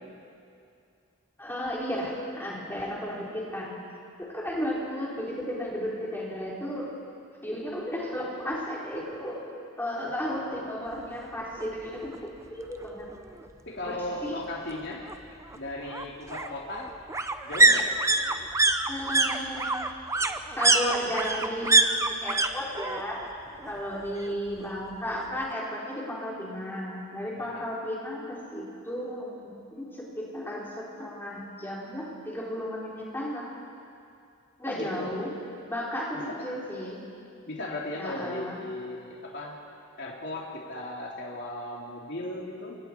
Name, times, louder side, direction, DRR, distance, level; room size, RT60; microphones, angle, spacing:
voice 1, 1.4-3.8 4.2-6.9 7.4-9.4 9.8-13.1 13.8-14.0 14.2-14.3 18.9-19.8 20.6-23.2 23.6-33.5 34.6-35.3 35.7-36.2 36.4-37.0 38.0-38.6, equal, 10° left, -5 dB, 4.0 m, -34 dB
voice 2, 10.0-10.8 13.7-15.0 15.5-16.9 17.4-17.9 23.6-23.8 27.3-27.6 34.6-35.1 36.3-36.4 37.5-39.6 40.0-42.8, left 1 dB, 55° left, -3 dB, 3.2 m, -37 dB
sound 1, 11.6-11.7 12.1-12.2 12.4-13.4 14.7-22.5 22.7-23.3 23.6-24.6 24.9-25.0, right 2 dB, 15° right, 0.7 m, -25 dB
29.0 x 24.5 x 4.6 m, 2.5 s
head